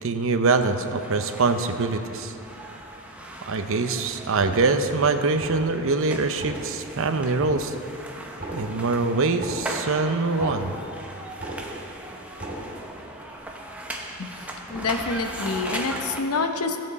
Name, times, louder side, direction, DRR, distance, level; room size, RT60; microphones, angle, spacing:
voice 1, 0.0-2.3 3.5-7.7 8.5-10.7, right 3 dB, 65° right, 8 dB, 0.6 m, -24 dB
sound 1, 0.6-16.2, right 1 dB, 5° right, 0.8 m, -38 dB
sound 2, 4.3-5.0 5.3-5.9 6.3-7.0 7.3-8.0 8.3-11.0 11.3-12.0 12.3-13.0 13.3-13.4, right 1 dB, 40° right, 2.6 m, -37 dB
voice 2, 14.2-16.8, left 4 dB, 85° left, 6 dB, 0.8 m, -27 dB
16.0 x 7.5 x 4.1 m, 2.7 s
head